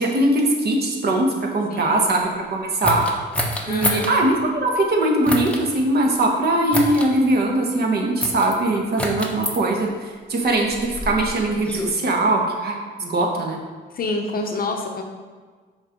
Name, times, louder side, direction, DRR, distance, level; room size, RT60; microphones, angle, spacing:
voice 1, 0.0-3.0 3.7-9.9 10.3-13.6, right 2 dB, 50° right, 1 dB, 1.3 m, -21 dB
voice 2, 1.7-2.1 3.7-4.1 13.9-15.0, left 2 dB, 50° left, 2 dB, 0.8 m, -27 dB
sound 1, 2.8-4.1 5.2-5.6 6.7-7.1 8.2-8.6 9.0-9.6 10.5-11.9, equal, 5° left, 0.8 m, -27 dB
6.0 x 3.8 x 5.2 m, 1.5 s
cardioid pair, 90°, 20 cm